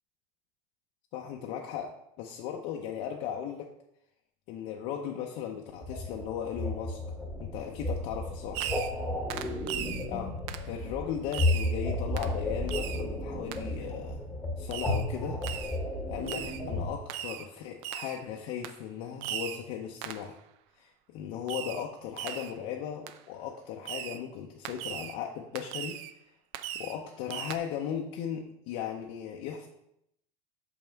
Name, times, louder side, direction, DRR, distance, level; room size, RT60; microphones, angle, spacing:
voice 1, 1.1-3.7 4.5-7.0 7.4-8.6 10.1-10.4 10.7-14.2 14.6-15.4 16.1-20.4 20.8-26.0 26.8-29.7, left 9 dB, 50° left, 1 dB, 0.6 m, -37 dB
sound 1, 5.8-16.9, left 1 dB, 5° left, 1.0 m, -33 dB
Fireworks, 8.5-9.0 9.3-10.1 10.5-10.7 11.3-11.7 12.2-12.4 12.7-13.0 13.5-13.6 14.7-15.1 15.4-15.8 16.3-16.6 17.1-17.5 17.8-18.2 18.6-18.8 19.2-19.6 20.0-20.3 21.5-21.9 22.2-22.6 23.1-23.2 23.8-24.2 24.6-25.2 25.5-26.1 26.5-27.0 27.3-27.6, right 11 dB, 50° right, 0.4 m, -38 dB
6.2 x 5.5 x 4.5 m, 0.78 s
cardioid pair, 170°, 14 cm